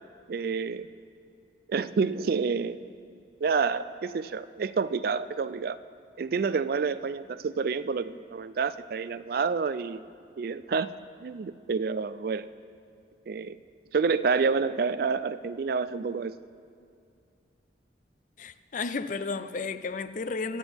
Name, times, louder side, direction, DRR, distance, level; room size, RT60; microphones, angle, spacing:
voice 1, 0.3-0.9 1.7-2.8 3.4-5.8 6.2-10.0 10.4-12.5 13.3-13.6 13.9-16.4, right 5 dB, 50° right, 0.3 m, -28 dB
voice 2, 18.4-20.6, left 4 dB, 45° left, 0.4 m, -33 dB
25.0 x 9.1 x 3.5 m
head